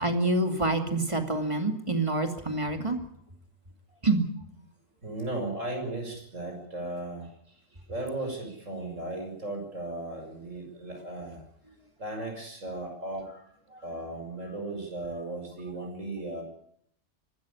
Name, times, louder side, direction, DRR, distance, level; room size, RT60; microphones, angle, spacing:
voice 1, 0.0-3.0 4.0-4.2 13.7-13.8, right 2 dB, 25° right, 5 dB, 2.6 m, -27 dB
voice 2, 5.0-11.4 12.0-13.5 13.8-16.4, right 2 dB, 70° right, 3 dB, 6.8 m, -36 dB
25.0 x 12.5 x 9.9 m, 0.68 s
omnidirectional pair, 1.3 m